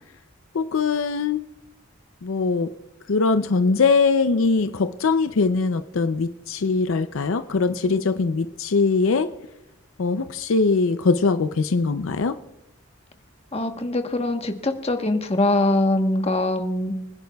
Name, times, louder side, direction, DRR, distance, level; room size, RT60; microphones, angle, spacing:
voice 1, 0.5-1.4 2.2-2.7 3.1-9.3 10.0-12.3, left 4 dB, 70° left, 10 dB, 0.5 m, -21 dB
voice 2, 13.5-17.0, left 2 dB, 30° left, 5 dB, 1.1 m, -23 dB
25.5 x 10.5 x 2.3 m, 0.96 s
head